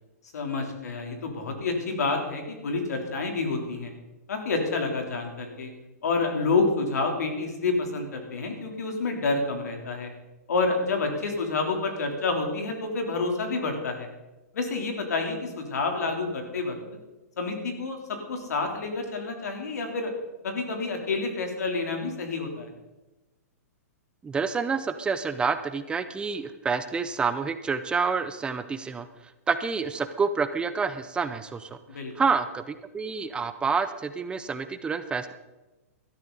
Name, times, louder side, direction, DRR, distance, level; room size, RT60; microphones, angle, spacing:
voice 1, 0.3-3.9 4.3-5.7 6.0-10.1 10.5-14.1 14.5-16.7 17.4-20.1 20.4-22.7 31.9-32.1, left 3 dB, 80° left, 3 dB, 3.4 m, -28 dB
voice 2, 24.2-29.1 29.5-31.7 32.2-35.3, right 5 dB, 10° right, 11 dB, 0.5 m, -28 dB
17.0 x 13.0 x 4.0 m, 1.1 s
hypercardioid pair, 145°, 9 cm